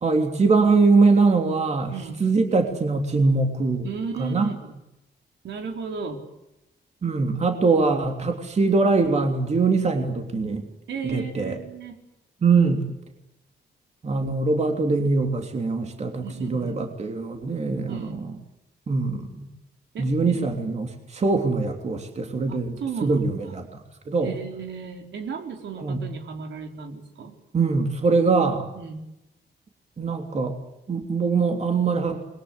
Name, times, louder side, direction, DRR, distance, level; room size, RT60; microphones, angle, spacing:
voice 1, 0.0-1.9 2.2-3.9 4.2-4.5 7.0-10.7 11.0-11.6 12.4-12.8 14.0-18.3 18.9-19.5 20.0-23.7 24.1-24.3 25.8-26.0 27.5-28.7 30.0-30.6 30.9-32.2, right 4 dB, 35° right, 4 dB, 3.3 m, -22 dB
voice 2, 1.9-2.2 3.8-4.8 5.4-6.2 10.9-12.0 16.2-16.8 17.9-18.2 19.9-20.4 22.5-23.5 24.2-27.3 28.7-29.0, right 6 dB, 75° right, 4 dB, 4.8 m, -35 dB
28.5 x 22.5 x 8.3 m, 0.92 s
wide cardioid pair, 155°, 19 cm